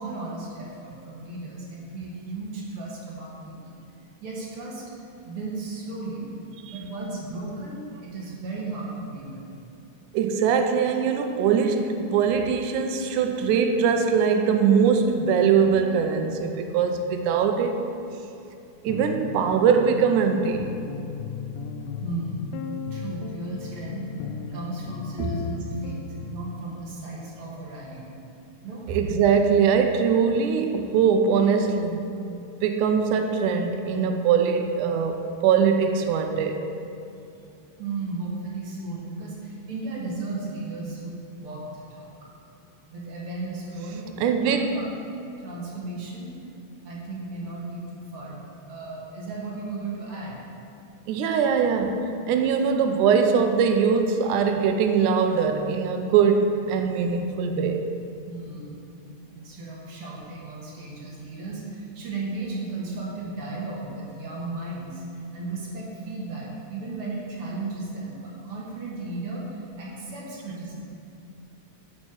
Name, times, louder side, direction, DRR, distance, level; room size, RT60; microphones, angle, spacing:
voice 1, 0.0-3.8 4.2-4.9 5.2-6.3 6.7-9.5 22.0-22.5 22.9-28.1 28.6-28.9 37.8-42.3 42.8-44.1 44.4-44.8 45.4-46.3 46.8-50.4 58.3-58.7 59.3-70.8, right 3 dB, 55° right, -4 dB, 1.9 m, -35 dB
voice 2, 10.1-17.9 18.8-20.8 25.2-25.3 28.9-32.2 32.6-36.7 44.2-44.7 51.1-57.9, right 6 dB, 80° right, 6 dB, 2.0 m, -22 dB
sound 1, 18.9-26.6, left 6 dB, 80° left, 1.9 m, -36 dB
8.7 x 4.4 x 6.1 m, 2.6 s
omnidirectional pair, 3.6 m